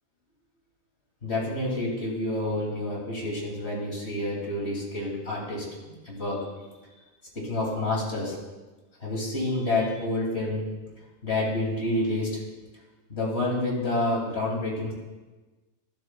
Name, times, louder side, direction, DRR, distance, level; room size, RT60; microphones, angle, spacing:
voice 1, 1.2-6.7 7.3-8.4 9.0-10.6 11.2-12.4 13.1-14.9, left 2 dB, 50° left, -3 dB, 2.7 m, -28 dB
13.0 x 12.0 x 2.2 m, 1.2 s
omnidirectional pair, 1.4 m